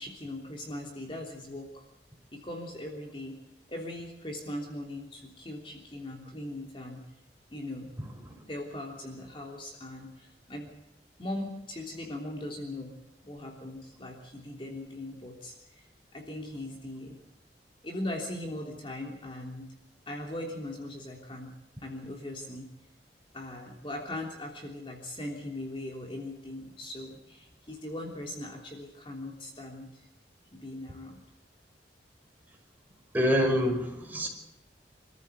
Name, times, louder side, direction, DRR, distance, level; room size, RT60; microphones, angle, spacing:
voice 1, 0.0-1.8 2.3-3.4 3.7-7.0 7.5-7.9 8.5-10.7 11.2-13.0 13.2-15.9 16.1-17.2 17.8-19.7 20.1-21.5 21.8-22.7 23.3-30.1 30.5-31.2, left 1 dB, 30° left, 1 dB, 3.3 m, -39 dB
voice 2, 33.1-34.3, equal, 10° right, 1 dB, 5.7 m, -26 dB
27.0 x 14.5 x 8.1 m, 0.93 s
head